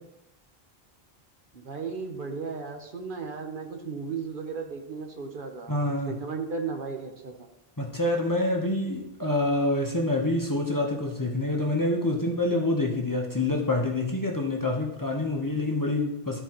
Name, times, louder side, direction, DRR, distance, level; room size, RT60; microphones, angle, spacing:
voice 1, 1.5-7.5, right 5 dB, 60° right, 3 dB, 1.0 m, -35 dB
voice 2, 5.7-6.1 7.8-16.4, left 2 dB, 20° left, 0 dB, 0.8 m, -26 dB
12.5 x 4.5 x 2.9 m, 0.87 s
omnidirectional pair, 1.0 m